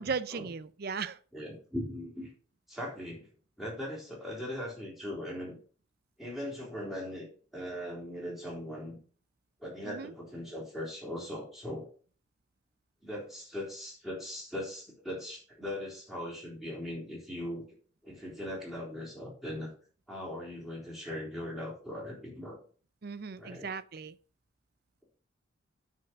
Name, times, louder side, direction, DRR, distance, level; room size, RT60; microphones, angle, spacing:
voice 1, 0.0-1.2 9.8-10.1 23.0-24.2, right 5 dB, 50° right, 0.5 m, -37 dB
voice 2, 1.3-2.3 2.7-3.3 3.6-5.6 6.2-7.3 7.5-9.0 9.6-11.9 13.0-17.6 18.0-19.7 20.1-22.6 23.4-23.7, left 1 dB, ahead, 3.6 m, -39 dB
9.4 x 4.7 x 6.3 m
head